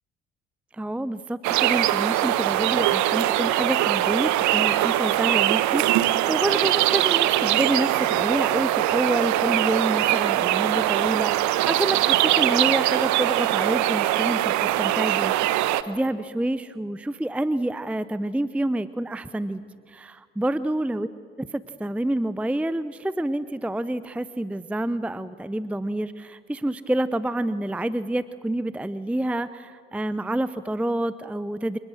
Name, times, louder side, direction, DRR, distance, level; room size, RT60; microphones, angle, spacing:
voice 1, 0.7-19.6 19.9-21.1 21.4-31.8, right 1 dB, 5° right, 15 dB, 0.6 m, -28 dB
sound 1, 1.4-15.8, right 14 dB, 60° right, 1.0 m, -22 dB
27.0 x 20.5 x 6.3 m, 2.2 s
figure-of-eight pair, 50°, 33 cm